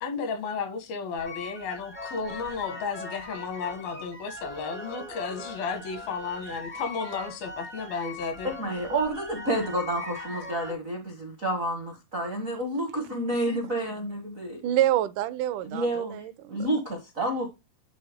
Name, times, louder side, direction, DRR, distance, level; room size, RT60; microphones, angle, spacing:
voice 1, 0.0-8.5, left 5 dB, 85° left, 3.3 m, -33 dB
sound 1, 1.2-10.7, left 2 dB, 10° left, 0.5 m, -40 dB
voice 2, 8.4-14.6 15.6-17.5, right 1 dB, 60° right, 0.8 m, -30 dB
voice 3, 14.6-16.7, right 13 dB, 75° right, 1.9 m, -27 dB
10.0 x 3.7 x 3.5 m
omnidirectional pair, 4.1 m